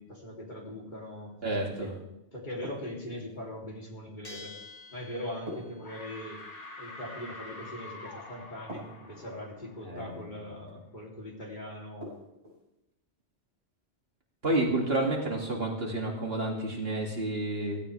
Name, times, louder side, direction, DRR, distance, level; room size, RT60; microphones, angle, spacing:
voice 1, 0.0-1.3 1.7-1.9 2.3-4.6 4.9-6.4 6.8-12.1, left 1 dB, 40° left, -3 dB, 3.4 m, -41 dB
voice 2, 1.4-1.9 9.9-10.0 14.4-17.8, right 2 dB, 55° right, -1 dB, 2.8 m, -30 dB
sound 1, 2.6-3.4 5.5-6.5 8.7-9.4 12.0-12.6, equal, 35° right, 6.1 m, -44 dB
Bell, 4.2-5.8, left 3 dB, 20° left, 1.6 m, -48 dB
sound 2, 5.1-5.5 5.8-10.4, left 2 dB, 75° left, 2.1 m, -46 dB
16.5 x 16.5 x 3.4 m, 0.92 s
omnidirectional pair, 1.2 m